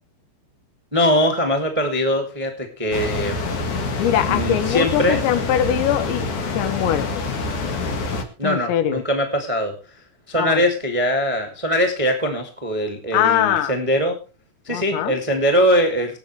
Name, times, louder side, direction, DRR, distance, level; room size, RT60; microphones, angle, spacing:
voice 1, 0.9-3.4 4.3-5.2 8.4-9.7 10.3-14.2 14.6-16.2, equal, 15° right, 3 dB, 1.1 m, -21 dB
sound 1, 2.9-8.2, left 3 dB, 50° left, 2.7 m, -26 dB
voice 2, 4.0-6.3 6.5-7.1 8.4-9.0 10.4-10.6 13.1-13.7 14.7-15.1, left 10 dB, 80° left, 12 dB, 3.3 m, -21 dB
26.0 x 8.9 x 3.3 m, 0.32 s
omnidirectional pair, 5.4 m